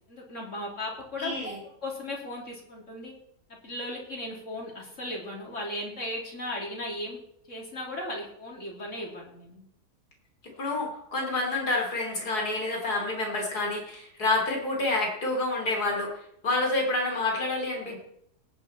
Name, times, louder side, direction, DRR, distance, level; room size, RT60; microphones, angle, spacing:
voice 1, 0.1-1.5 1.8-3.1 3.6-7.2 7.5-9.7, left 1 dB, 50° left, -2 dB, 3.6 m, -36 dB
voice 2, 1.2-1.6 10.6-18.0, left 2 dB, 80° left, 0 dB, 3.9 m, -28 dB
18.5 x 9.3 x 4.4 m, 0.72 s
omnidirectional pair, 1.7 m